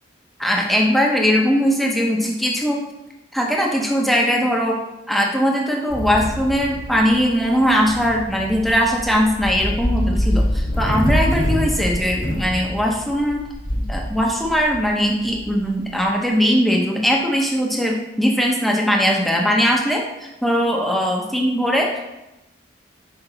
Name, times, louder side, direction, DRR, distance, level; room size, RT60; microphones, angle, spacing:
voice 1, 0.4-2.8 3.3-4.8 5.1-13.4 13.9-22.0, equal, ahead, -1 dB, 0.8 m, -20 dB
sound 1, 5.9-16.1, equal, 40° left, 1.4 m, -25 dB
5.8 x 5.0 x 3.9 m, 0.96 s
head